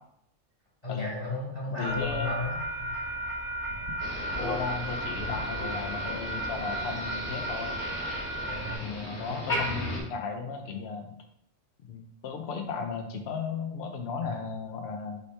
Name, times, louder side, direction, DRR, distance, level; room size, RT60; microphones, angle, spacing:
voice 1, 0.8-3.2 8.4-9.6 14.2-14.5, left 3 dB, 25° left, -7 dB, 1.3 m, -35 dB
voice 2, 1.7-2.3 4.4-7.8 8.8-11.2 11.9-15.2, left 5 dB, 60° left, 4 dB, 0.9 m, -35 dB
sound 1, 1.8-8.8, right 1 dB, 70° right, 1.2 m, -34 dB
Motor vehicle (road), 4.0-10.0, left 1 dB, 40° left, 1.4 m, -36 dB
5.5 x 2.9 x 3.3 m, 0.73 s
omnidirectional pair, 1.3 m